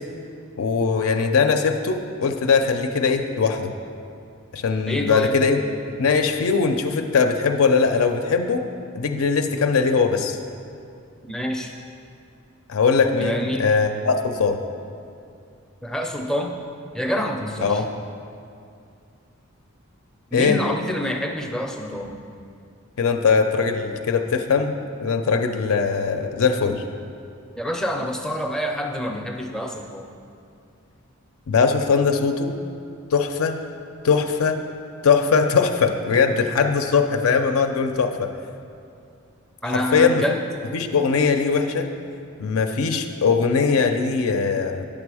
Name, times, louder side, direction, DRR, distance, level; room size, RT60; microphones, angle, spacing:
voice 1, 0.6-3.7 4.5-5.6 6.0-8.7 9.0-10.4 12.7-14.6 17.6-17.9 20.3-20.6 23.0-26.8 31.5-32.5 33.1-33.6 34.0-34.6 35.0-38.3 39.7-40.2 40.7-41.9 42.4-44.8, left 5 dB, 80° left, 6 dB, 0.5 m, -20 dB
voice 2, 4.9-5.3 11.2-11.7 13.2-13.7 15.8-16.5 16.9-17.8 20.3-22.2 27.6-30.1 39.6-40.4, equal, 5° left, 2 dB, 0.4 m, -27 dB
9.0 x 6.0 x 4.8 m, 2.4 s
head